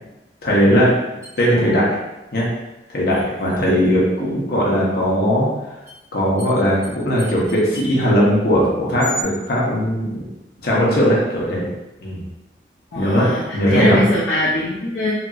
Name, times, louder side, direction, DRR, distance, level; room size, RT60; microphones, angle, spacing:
voice 1, 0.4-0.9 1.4-2.0 2.3-2.5 2.9-5.5 6.1-10.2 10.6-11.7 12.0-12.2 13.0-14.0, equal, 60° left, -5 dB, 0.9 m, -18 dB
sound 1, 1.2-1.3 3.1-4.1 5.8-6.0 6.4-6.5 6.8-6.9 7.2-8.0 9.0-9.2, right 1 dB, 20° right, 0.7 m, -34 dB
voice 2, 12.9-15.1, left 1 dB, 80° left, -7 dB, 0.6 m, -21 dB
4.1 x 2.0 x 2.4 m, 0.98 s
head